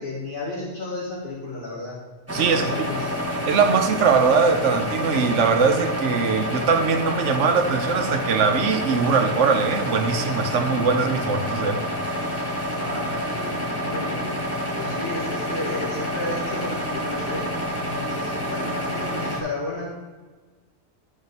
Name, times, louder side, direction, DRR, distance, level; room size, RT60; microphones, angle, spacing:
voice 1, 0.0-2.0 2.5-3.2 12.7-14.3 14.8-17.4 17.8-20.0, left 2 dB, 45° left, -7 dB, 2.3 m, -32 dB
sound 1, 2.3-19.4, equal, 15° right, 1.2 m, -28 dB
voice 2, 2.3-2.7 3.5-11.8, right 5 dB, 85° right, 7 dB, 1.1 m, -21 dB
10.5 x 5.1 x 4.1 m, 1.3 s
omnidirectional pair, 1.2 m